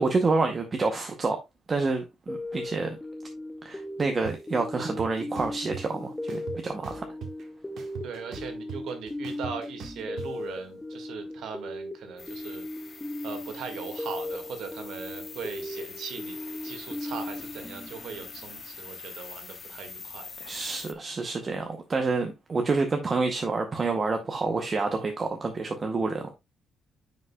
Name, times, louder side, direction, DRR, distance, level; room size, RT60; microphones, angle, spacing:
voice 1, 0.0-1.4 1.7-3.0 3.6-7.0 20.4-26.4, right 3 dB, 25° right, 0.7 m, -28 dB
sound 1, 2.3-18.6, left 1 dB, 10° left, 0.5 m, -38 dB
sound 2, 4.2-4.3 4.8-5.8 6.3-7.4 7.8-10.3, right 7 dB, 60° right, 1.3 m, -40 dB
voice 2, 8.0-12.7 13.2-16.4 16.6-20.3, right 5 dB, 75° right, 1.7 m, -39 dB
sound 3, 12.2-20.9, left 5 dB, 30° left, 0.8 m, -44 dB
9.5 x 5.3 x 2.2 m
cardioid pair, 180°, 0 cm